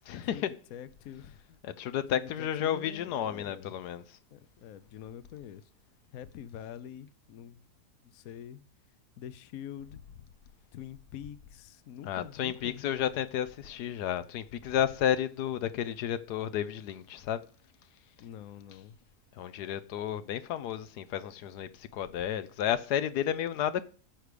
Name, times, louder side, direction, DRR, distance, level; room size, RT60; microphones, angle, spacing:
voice 1, 0.1-0.5 1.6-4.2 12.0-17.4 19.3-23.8, left 10 dB, 85° left, 1.3 m, -32 dB
voice 2, 0.7-1.6 2.1-3.7 4.3-5.7 6.1-7.6 8.0-8.6 9.2-10.0 10.7-12.9 18.2-19.0, left 10 dB, 70° left, 1.1 m, -46 dB
14.0 x 4.9 x 6.7 m
omnidirectional pair, 1.7 m